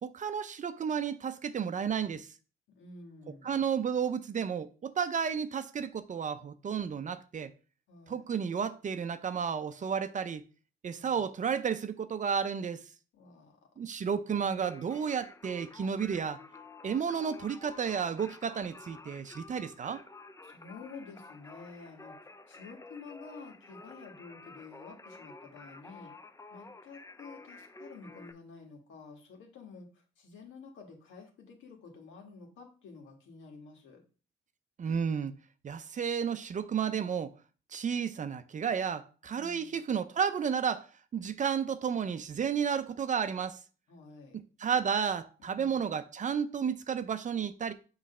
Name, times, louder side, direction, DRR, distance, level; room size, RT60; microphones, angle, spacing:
voice 1, 0.0-2.3 3.4-7.5 8.1-10.4 10.8-12.8 13.8-16.4 16.8-20.0 34.8-35.3 35.6-37.3 37.7-43.6 44.6-47.7, right 7 dB, 40° right, 0.6 m, -32 dB
voice 2, 2.7-3.6 7.9-8.3 10.9-11.2 13.1-13.6 14.2-14.7 20.4-22.1 22.5-26.1 26.5-34.0 39.3-39.8 43.9-44.4 45.4-45.9, left 4 dB, 75° left, 1.7 m, -50 dB
Singing, 14.5-28.3, left 3 dB, 15° left, 0.6 m, -51 dB
6.2 x 3.1 x 5.5 m
cardioid pair, 90°, 20 cm